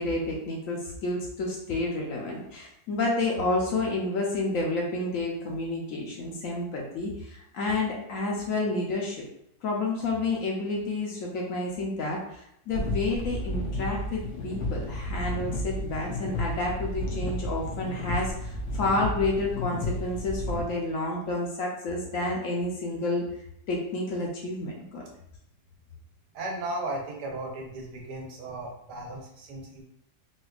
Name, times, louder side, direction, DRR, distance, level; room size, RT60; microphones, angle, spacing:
voice 1, 0.0-9.3 9.6-23.2 23.7-25.0, left 2 dB, 70° left, -1 dB, 0.9 m, -30 dB
sound 1, 12.7-20.6, left 1 dB, 85° left, 1.2 m, -32 dB
voice 2, 26.3-29.8, right 2 dB, 85° right, -1 dB, 1.4 m, -36 dB
4.1 x 2.2 x 2.3 m, 0.75 s
omnidirectional pair, 1.7 m